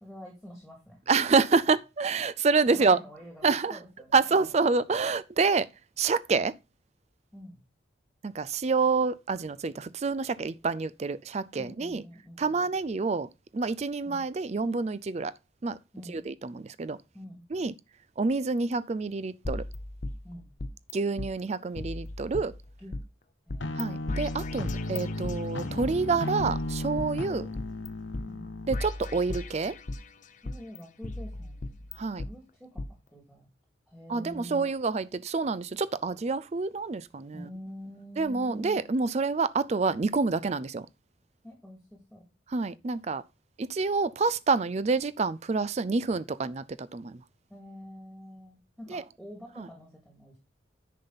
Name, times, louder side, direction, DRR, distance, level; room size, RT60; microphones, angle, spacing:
voice 1, 0.0-1.0 2.7-4.5 7.3-7.6 11.6-12.7 14.0-14.2 15.9-16.2 17.1-17.4 20.2-20.5 22.8-22.9 23.5-24.0 28.3-28.5 30.4-33.5 33.9-34.6 37.3-38.8 41.4-42.3 47.5-50.4, equal, ahead, 2.4 m, -46 dB
voice 2, 1.1-3.0 3.4-3.8 4.1-5.7 6.0-6.5 8.2-12.0 12.4-15.3 15.6-15.8 16.1-17.0 17.5-17.7 18.2-19.6 20.9-22.5 23.7-27.5 28.7-29.7 32.0-32.2 34.1-37.5 38.2-40.9 42.5-43.2 43.6-47.2 48.9-49.0 49.6-49.7, right 4 dB, 35° right, 0.4 m, -27 dB
sound 1, 19.4-20.9 21.2-21.3 21.8-23.0 23.5-23.8 24.1-25.9 26.4-27.9 28.1-28.2 28.7-30.1 30.4-32.3 32.8-32.9, left 2 dB, 40° left, 0.6 m, -37 dB
sound 2, 23.6-28.8, left 1 dB, 75° left, 1.0 m, -35 dB
10.0 x 5.6 x 4.0 m
head